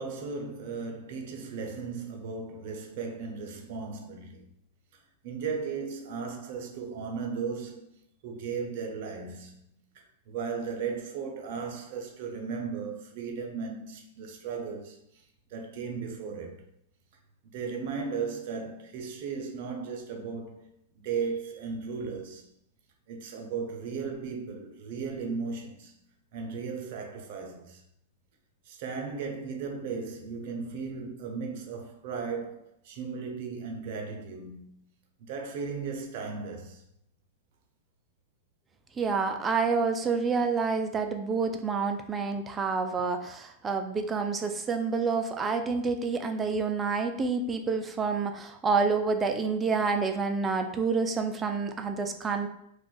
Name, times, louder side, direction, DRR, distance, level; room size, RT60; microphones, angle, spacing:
voice 1, 0.0-4.5 5.2-7.9 8.2-15.2 15.5-16.6 17.5-20.7 21.0-22.5 23.1-25.9 26.3-27.8 28.7-34.9 35.2-36.8, right 5 dB, 60° right, 0.6 m, -36 dB
voice 2, 39.0-52.5, right 4 dB, 20° right, 0.4 m, -28 dB
2.5 x 2.4 x 3.8 m
hypercardioid pair, 120°, 0 cm